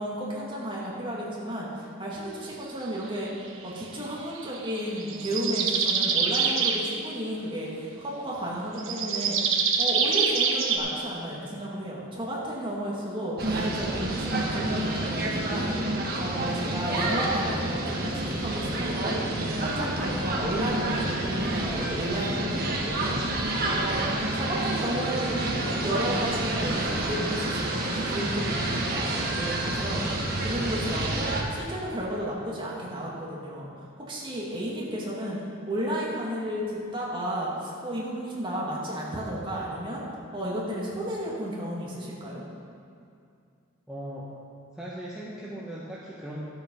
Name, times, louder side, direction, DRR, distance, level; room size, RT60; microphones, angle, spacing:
voice 1, 0.0-3.3 3.6-9.4 9.8-19.2 19.6-23.2 23.6-25.5 25.8-30.0 30.4-35.4 35.7-40.0 40.3-42.4, right 1 dB, 25° right, -5 dB, 2.2 m, -33 dB
sound 1, 4.4-6.8 8.8-10.8, right 6 dB, 70° right, 1.1 m, -25 dB
sound 2, 13.4-31.4, right 1 dB, 45° right, 1.4 m, -29 dB
voice 2, 43.9-44.3 44.7-46.4, right 1 dB, 5° right, -8 dB, 1.1 m, -38 dB
12.0 x 8.0 x 5.6 m, 2.4 s
head